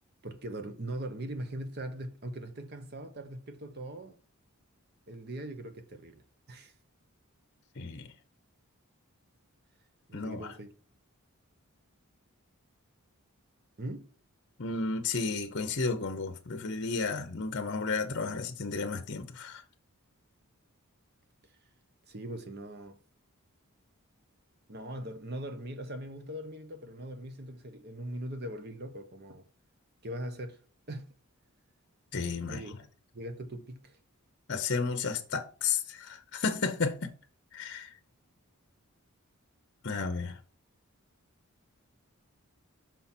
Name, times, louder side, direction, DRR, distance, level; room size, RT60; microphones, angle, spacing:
voice 1, 0.2-4.2 5.1-6.7 10.1-10.7 13.8-14.1 22.1-23.0 24.7-29.4 30.0-30.6 30.9-31.1 32.4-32.7 33.1-34.0, right 1 dB, 45° right, 0.9 m, -40 dB
voice 2, 7.8-8.1 10.1-10.4 14.6-19.6 32.1-32.6 34.5-37.1 37.5-37.9 39.8-40.4, left 4 dB, 50° left, 0.8 m, -32 dB
5.9 x 5.6 x 4.4 m
head